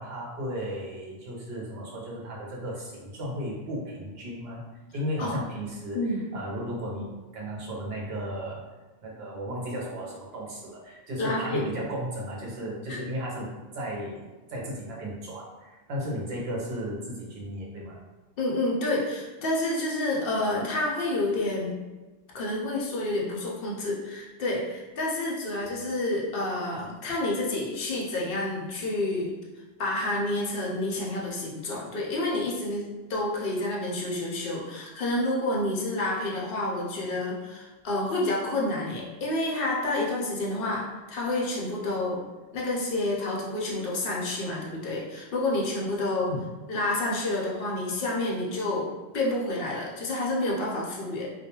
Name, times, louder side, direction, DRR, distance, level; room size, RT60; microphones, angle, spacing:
voice 1, 0.0-4.6 4.9-7.1 7.3-8.7 9.0-14.2 14.5-18.0 46.3-46.5, equal, 60° right, -3 dB, 0.8 m, -35 dB
voice 2, 11.2-11.7 12.9-13.0 18.4-21.7 22.3-29.3 29.8-42.2 42.5-46.3 46.7-51.3, left 2 dB, 60° left, -3 dB, 0.6 m, -29 dB
2.3 x 2.2 x 2.8 m, 1.2 s
omnidirectional pair, 1.3 m